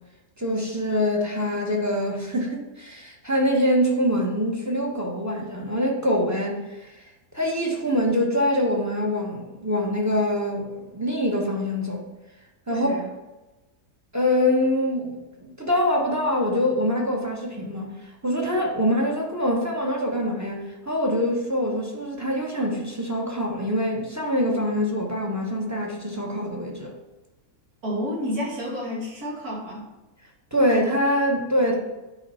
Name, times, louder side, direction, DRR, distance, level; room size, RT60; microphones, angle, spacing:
voice 1, 0.4-7.0 7.3-12.0 12.7-13.1 14.1-15.2 15.4-26.9 30.5-31.8, equal, 10° right, 0 dB, 1.2 m, -24 dB
voice 2, 12.7-13.0 27.8-29.8, equal, 70° right, -4 dB, 2.9 m, -30 dB
10.5 x 4.8 x 4.4 m, 1.1 s
omnidirectional pair, 1.7 m